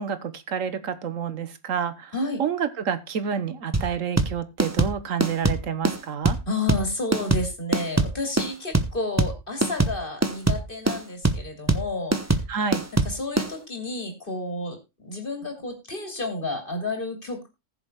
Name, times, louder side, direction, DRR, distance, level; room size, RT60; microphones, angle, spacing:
voice 1, 0.0-2.1 2.4-6.4 12.5-12.8, right 7 dB, 90° right, 1.5 m, -29 dB
sound 1, 3.7-13.5, right 2 dB, 15° right, 0.8 m, -23 dB
voice 2, 6.5-12.1 13.0-17.5, left 2 dB, 40° left, 3.2 m, -31 dB
19.5 x 7.0 x 2.3 m
omnidirectional pair, 1.3 m